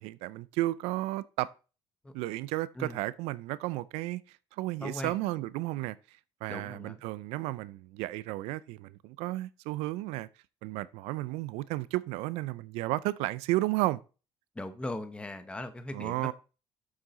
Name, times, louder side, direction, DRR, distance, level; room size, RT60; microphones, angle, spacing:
voice 1, 0.0-1.5 2.1-6.0 6.4-10.3 10.6-14.0 15.9-16.3, right 18 dB, 85° right, 0.4 m, -33 dB
voice 2, 4.8-5.1 6.5-7.0 14.6-16.3, left 1 dB, 10° left, 0.9 m, -39 dB
7.5 x 6.4 x 4.1 m
cardioid pair, 100°, 10 cm